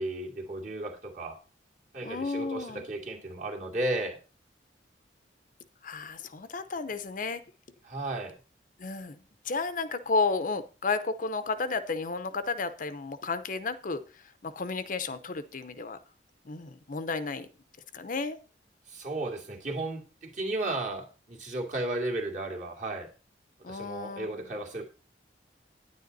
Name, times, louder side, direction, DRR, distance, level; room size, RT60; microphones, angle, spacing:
voice 1, 0.0-1.4 1.9-4.2 7.8-8.3 18.9-23.1 23.6-24.9, right 2 dB, 45° right, 1 dB, 2.3 m, -34 dB
voice 2, 2.0-2.9 5.8-7.4 8.8-9.2 9.4-16.0 16.5-17.5 17.9-18.4 23.6-24.4, left 4 dB, 50° left, 11 dB, 0.7 m, -32 dB
9.8 x 9.5 x 4.0 m, 0.34 s
head